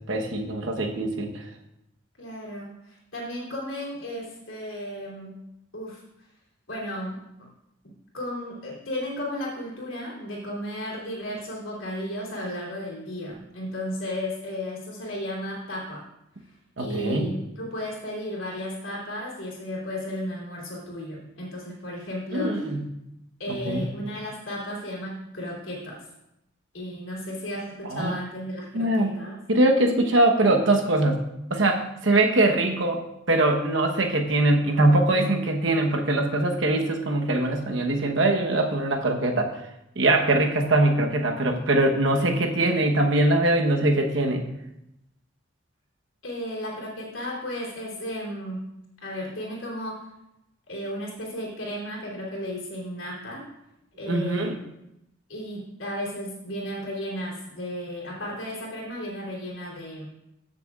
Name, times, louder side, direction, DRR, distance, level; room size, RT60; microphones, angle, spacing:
voice 1, 0.1-1.4 16.8-17.3 22.3-22.8 23.5-23.9 27.9-28.1 28.7-29.1 29.5-31.2 31.5-33.0 33.3-39.5 40.0-44.4 54.1-54.5, right 2 dB, 70° right, 3 dB, 1.0 m, -22 dB
voice 2, 2.2-5.4 5.7-6.0 6.7-7.2 7.8-16.0 16.8-22.6 23.4-26.0 26.7-29.4 46.2-48.6 49.0-50.1 50.7-53.5 54.0-54.5 55.3-60.1, equal, 90° left, -4 dB, 2.9 m, -34 dB
14.5 x 6.7 x 2.4 m, 0.85 s
head